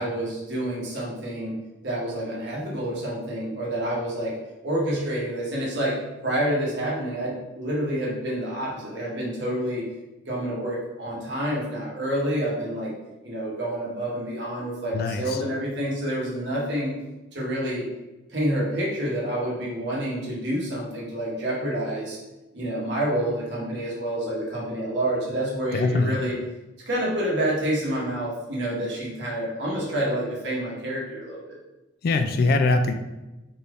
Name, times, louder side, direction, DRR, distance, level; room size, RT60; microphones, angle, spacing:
voice 1, 0.0-1.5 1.8-4.3 4.6-6.0 6.2-9.8 10.3-12.9 13.2-16.9 17.3-17.8 18.3-22.2 22.5-26.3 26.9-31.6, right 1 dB, 65° right, -5 dB, 1.4 m, -28 dB
voice 2, 25.7-26.2 32.0-32.9, left 3 dB, 55° left, 7 dB, 0.3 m, -22 dB
4.5 x 2.5 x 3.4 m, 1.0 s
head